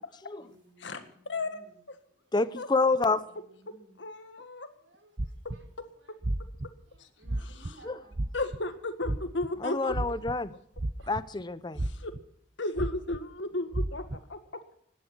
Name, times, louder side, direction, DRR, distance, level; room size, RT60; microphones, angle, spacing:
voice 1, 0.4-1.8 2.2-2.3 2.9-4.0 4.8-5.6 6.0-6.1 6.9-8.2 11.0-11.1, right 1 dB, 85° right, 5.2 m, -58 dB
voice 2, 1.3-2.0 2.6-2.7 4.0-4.7 5.8-5.9 7.4-7.8 8.3-10.0 11.9-12.1 12.6-14.4, left 2 dB, 75° left, 1.9 m, -34 dB
voice 3, 2.3-3.2 7.8-8.0 9.6-10.5 11.1-11.8, left 3 dB, 25° left, 0.7 m, -28 dB
sound 1, 5.2-5.7 6.2-6.7 7.3-7.7 8.1-8.6 9.0-9.5 9.9-10.4 10.8-11.4 11.8-12.2 12.8-13.2 13.7-14.2, right 1 dB, 35° right, 0.8 m, -31 dB
17.5 x 11.0 x 6.1 m
head